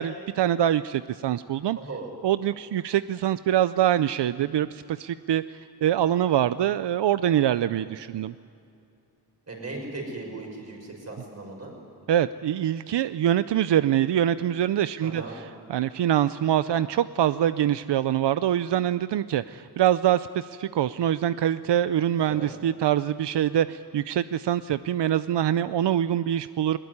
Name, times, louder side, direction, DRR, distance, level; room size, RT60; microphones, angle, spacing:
voice 1, 0.0-1.8 2.2-8.3 12.1-26.8, right 11 dB, 90° right, 14 dB, 0.6 m, -24 dB
voice 2, 1.7-2.1 7.7-7.9 9.5-11.7 15.0-15.4 22.2-22.5, right 2 dB, 40° right, 0 dB, 6.3 m, -37 dB
21.5 x 21.0 x 9.6 m, 2.6 s
wide cardioid pair, 170°, 40 cm